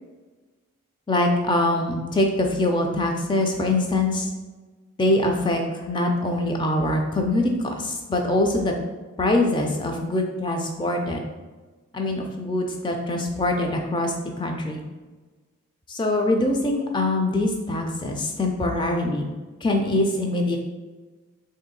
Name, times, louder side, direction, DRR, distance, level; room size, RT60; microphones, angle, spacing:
voice 1, 1.1-4.3 5.0-8.8 9.2-11.2 11.9-14.1 14.4-14.8 15.9-19.3 19.6-20.6, left 1 dB, 20° left, 2 dB, 0.4 m, -23 dB
3.4 x 2.7 x 3.8 m, 1.3 s
head